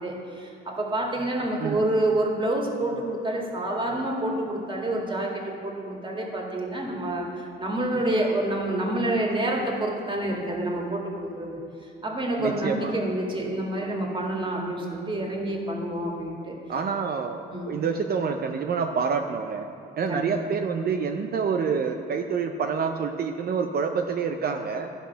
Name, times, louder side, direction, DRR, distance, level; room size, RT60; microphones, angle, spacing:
voice 1, 0.0-11.6 12.0-16.6 17.5-17.8 20.1-20.5, right 1 dB, 25° right, -1 dB, 1.9 m, -28 dB
voice 2, 12.4-13.0 16.7-19.6 20.0-24.9, right 5 dB, 50° right, 4 dB, 0.6 m, -27 dB
12.5 x 5.4 x 5.7 m, 2.5 s
cardioid pair, 90°, 20 cm